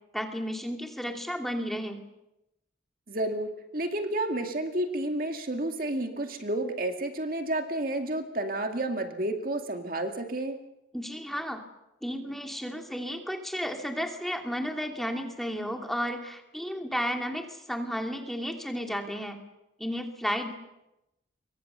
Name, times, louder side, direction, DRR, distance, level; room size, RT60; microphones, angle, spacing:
voice 1, 0.1-2.0 10.9-11.6 12.0-19.4 19.8-20.5, equal, ahead, 3 dB, 2.6 m, -33 dB
voice 2, 3.1-10.6, right 1 dB, 50° right, 5 dB, 2.2 m, -31 dB
26.5 x 23.5 x 6.9 m, 0.91 s
head